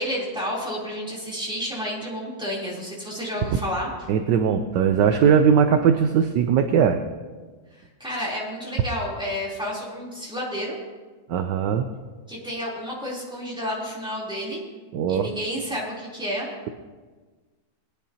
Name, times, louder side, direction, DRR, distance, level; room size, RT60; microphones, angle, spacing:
voice 1, 0.0-3.9 7.7-10.8 12.3-14.6 15.1-16.5, equal, ahead, -6 dB, 3.3 m, -30 dB
voice 2, 4.1-7.0 11.3-11.9 14.9-15.3, right 7 dB, 70° right, 7 dB, 1.2 m, -19 dB
21.5 x 10.0 x 2.9 m, 1.4 s
omnidirectional pair, 2.2 m